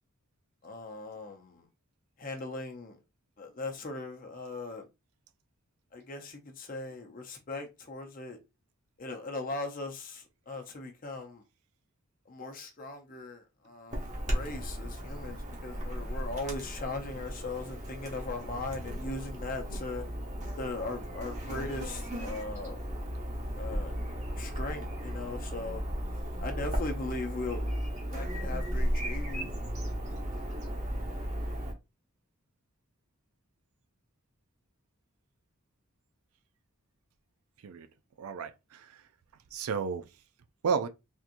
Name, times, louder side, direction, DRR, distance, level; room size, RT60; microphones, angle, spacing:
voice 1, 0.6-1.6 2.2-3.0 3.4-4.9 5.9-8.4 9.0-11.4 12.3-20.0 20.6-22.8 23.6-23.9 24.4-25.8 26.4-27.8 28.1-29.5 30.3-30.4, left 2 dB, 40° left, 0.6 m, -39 dB
Chirp tweet / Buzz, 13.9-31.7, equal, 35° right, 1.0 m, -35 dB
voice 2, 38.2-39.0 39.5-40.1 40.6-40.9, right 5 dB, 85° right, 0.4 m, -32 dB
3.6 x 2.9 x 2.5 m
head